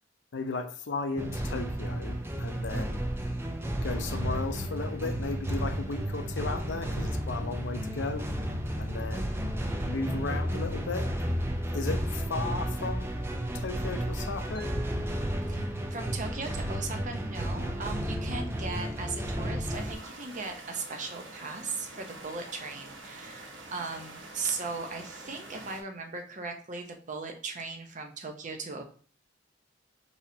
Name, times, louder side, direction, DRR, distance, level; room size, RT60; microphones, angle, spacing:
voice 1, 0.3-3.0 3.8-8.3 8.8-9.3 9.8-11.2 11.7-13.1 13.5-14.7, left 3 dB, 80° left, 0.6 m, -35 dB
sound 1, 1.2-19.9, equal, 15° right, 0.5 m, -32 dB
Mallet percussion, 14.5-17.4, left 1 dB, 60° left, 2.1 m, -45 dB
voice 2, 15.5-28.8, right 4 dB, 45° right, 0.8 m, -38 dB
sound 2, 19.7-25.8, right 2 dB, 90° right, 1.2 m, -46 dB
4.7 x 4.1 x 2.8 m
head